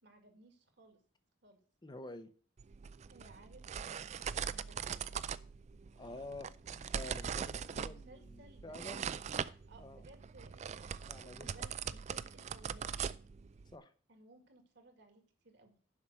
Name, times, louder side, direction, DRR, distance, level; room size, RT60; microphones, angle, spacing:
voice 1, 0.0-1.0 1.4-1.6 3.1-5.2 7.7-8.8 9.7-13.1 14.1-15.8, right 2 dB, 60° right, 5 dB, 2.1 m, -60 dB
voice 2, 1.8-2.3 6.0-9.1 9.8-10.0 11.0-11.7 13.7-13.9, left 2 dB, 20° left, 11 dB, 0.7 m, -49 dB
sound 1, 2.6-13.8, right 7 dB, 35° right, 0.3 m, -41 dB
7.4 x 5.9 x 7.5 m, 0.43 s
head